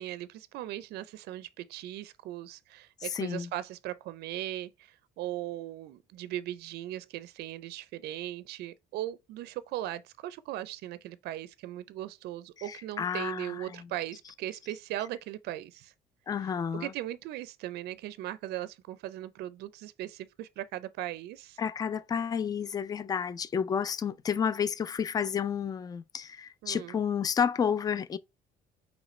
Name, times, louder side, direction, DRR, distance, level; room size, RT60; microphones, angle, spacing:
voice 1, 0.0-15.9 16.7-21.6 26.6-27.0, right 13 dB, 75° right, 0.4 m, -38 dB
voice 2, 3.0-3.5 12.7-13.8 16.3-16.9 21.6-28.2, left 7 dB, 20° left, 0.4 m, -31 dB
5.0 x 3.2 x 3.1 m
cardioid pair, 110°, 17 cm